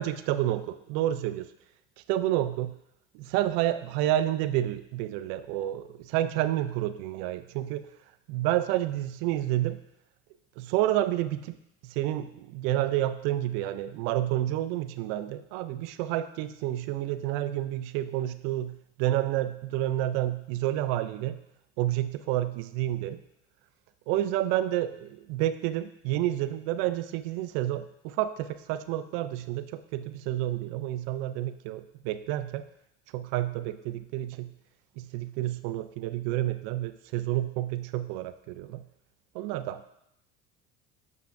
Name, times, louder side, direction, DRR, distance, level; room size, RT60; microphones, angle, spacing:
voice 1, 0.0-1.5 2.1-2.7 3.1-7.9 8.3-9.8 10.6-11.6 11.8-21.4 21.8-23.2 24.1-32.6 33.1-34.5 35.0-38.8 39.3-39.9, right 13 dB, 70° right, 13 dB, 0.5 m, -29 dB
7.8 x 5.5 x 2.6 m, 0.78 s
supercardioid pair, 85°, 34 cm